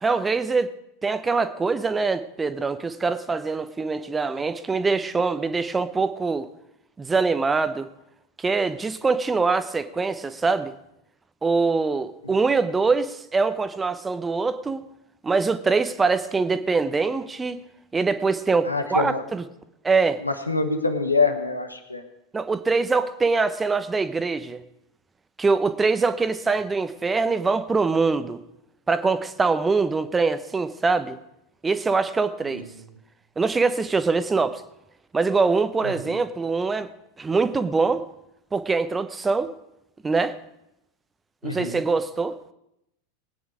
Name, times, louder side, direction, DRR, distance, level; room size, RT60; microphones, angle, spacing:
voice 1, 0.0-0.7 1.0-6.5 7.0-7.9 8.4-10.7 11.4-14.8 15.2-17.6 17.9-19.4 19.8-20.2 22.3-24.6 25.4-28.4 28.9-31.2 31.6-32.6 33.4-34.6 35.1-36.9 37.2-38.1 38.5-39.5 40.0-40.4 41.4-42.4, right 4 dB, 15° right, 12 dB, 0.9 m, -23 dB
voice 2, 18.6-19.2 20.2-22.0 32.6-32.7 35.8-35.9 41.4-41.8, left 3 dB, 85° left, 7 dB, 1.3 m, -25 dB
20.0 x 9.3 x 4.9 m, 0.84 s
figure-of-eight pair, 85°, 0 cm